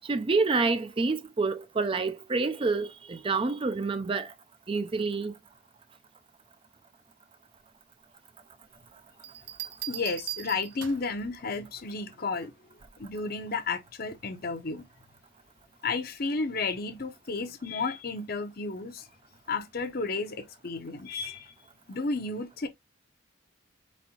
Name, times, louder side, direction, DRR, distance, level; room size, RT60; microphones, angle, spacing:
voice 1, 0.0-4.3 4.7-5.3, right 3 dB, 25° right, 0.4 m, -28 dB
sound 1, 9.2-11.2 12.8-13.1, right 12 dB, 60° right, 0.7 m, -39 dB
voice 2, 9.9-12.5 13.0-14.9 15.8-19.1 19.5-21.5 21.9-22.7, left 4 dB, 50° left, 0.7 m, -32 dB
4.4 x 4.1 x 2.8 m
head